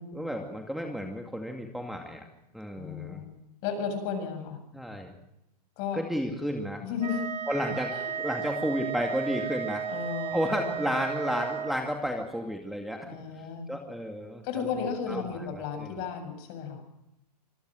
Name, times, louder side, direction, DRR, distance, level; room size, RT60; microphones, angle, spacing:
voice 1, 0.1-2.2 2.5-3.2 4.7-5.1 5.9-6.9 7.5-7.9 8.2-9.9 10.3-13.1 13.7-14.7 15.1-15.2 15.5-15.9, equal, ahead, 3 dB, 2.3 m, -32 dB
voice 2, 2.8-3.3 3.6-4.6 5.8-6.0 6.8-7.3 7.9-8.1 9.9-10.9 13.0-13.7 14.4-16.8, left 6 dB, 40° left, 7 dB, 7.8 m, -34 dB
Wind instrument woodwind instrument, 7.0-11.8, right 8 dB, 85° right, 5.1 m, -34 dB
26.0 x 20.0 x 7.8 m, 0.87 s
hypercardioid pair, 145°, 21 cm